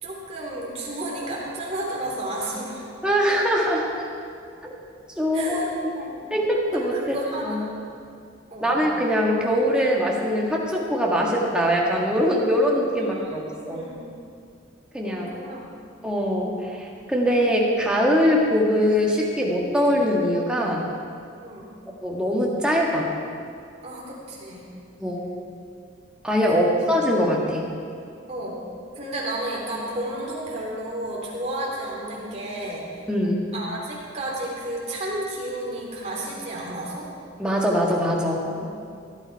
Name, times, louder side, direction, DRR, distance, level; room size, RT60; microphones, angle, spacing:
voice 1, 0.0-2.9 5.3-5.7 5.9-6.3 6.7-7.6 8.5-8.8 13.0-14.1 15.0-15.7 21.4-21.7 23.8-24.7 26.5-27.0 28.3-28.6 28.9-32.9 33.5-37.1 38.4-38.7, right 1 dB, 35° right, -4 dB, 3.1 m, -32 dB
voice 2, 3.0-4.1 5.2-5.9 6.3-7.2 7.4-7.8 8.6-13.4 13.7-13.8 14.9-15.3 16.0-20.8 22.0-23.1 25.0-25.2 26.2-27.6 33.1-33.4 37.4-38.4, equal, 5° right, -3 dB, 1.7 m, -22 dB
16.0 x 11.5 x 4.7 m, 2.4 s
head